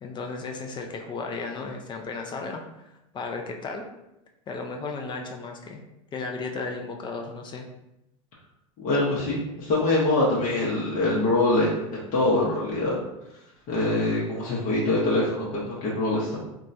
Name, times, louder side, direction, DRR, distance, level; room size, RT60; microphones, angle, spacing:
voice 1, 0.0-3.9 4.5-5.8 6.1-7.7, left 4 dB, 25° left, 3 dB, 0.4 m, -34 dB
voice 2, 8.8-11.7 12.1-12.9 13.7-16.4, left 2 dB, 50° left, -6 dB, 0.8 m, -24 dB
2.9 x 2.2 x 2.5 m, 0.89 s
hypercardioid pair, 95°, 17 cm